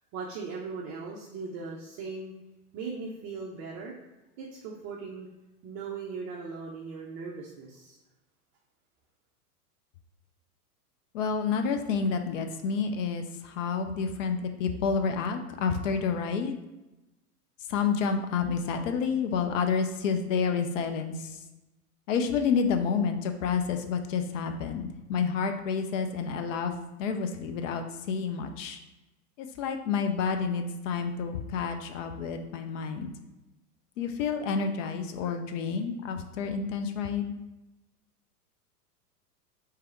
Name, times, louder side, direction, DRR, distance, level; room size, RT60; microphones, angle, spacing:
voice 1, 0.1-2.3 2.7-3.9 4.4-5.3 5.6-8.0, right 4 dB, 30° right, -2 dB, 0.5 m, -38 dB
voice 2, 11.1-16.6 17.7-21.4 22.1-26.7 27.0-28.8 29.4-33.1 34.0-37.3, left 5 dB, 55° left, 6 dB, 0.6 m, -29 dB
3.4 x 3.3 x 4.4 m, 1.0 s
hypercardioid pair, 105°, 47 cm